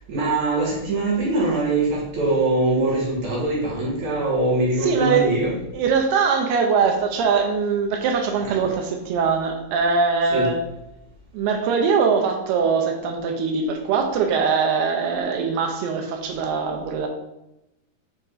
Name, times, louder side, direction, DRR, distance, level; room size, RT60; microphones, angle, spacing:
voice 1, 0.1-5.5 10.3-10.5, right 2 dB, 50° right, -4 dB, 3.0 m, -22 dB
voice 2, 4.8-5.3 5.7-10.6 11.3-17.1, right 5 dB, 80° right, 4 dB, 2.9 m, -22 dB
8.0 x 4.2 x 4.1 m, 0.90 s
omnidirectional pair, 4.6 m